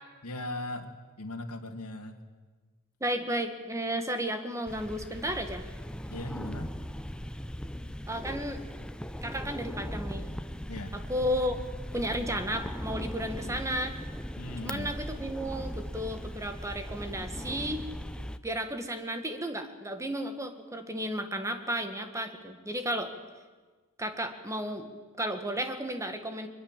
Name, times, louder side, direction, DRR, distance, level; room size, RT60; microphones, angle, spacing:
voice 1, 0.2-2.2 6.1-6.7 10.7-11.0 14.4-14.9 16.0-16.2, left 1 dB, 90° left, 3 dB, 1.9 m, -39 dB
voice 2, 3.0-5.6 8.1-8.6 9.2-10.3 10.9-11.6 11.9-14.0 14.6-17.8 18.4-23.1 24.0-24.9 25.2-26.5, equal, 15° right, 7 dB, 1.7 m, -33 dB
sound 1, 4.7-18.4, equal, 5° left, 0.6 m, -39 dB
23.0 x 21.5 x 7.5 m, 1.4 s
head